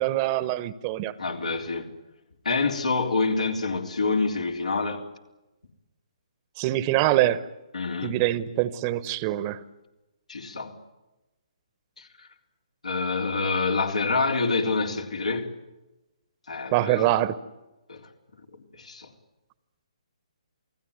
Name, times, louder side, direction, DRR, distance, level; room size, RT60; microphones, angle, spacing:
voice 1, 0.0-1.1 6.6-7.5 8.0-9.6 16.7-17.4, right 14 dB, 30° right, 1.1 m, -24 dB
voice 2, 1.2-1.9 2.4-5.1 7.7-8.2 10.3-10.8 12.0-12.3 12.8-15.5 16.5-17.1 17.9-18.1 18.7-19.1, left 4 dB, 85° left, 3.8 m, -27 dB
28.5 x 18.5 x 9.5 m
figure-of-eight pair, 140°, 4 cm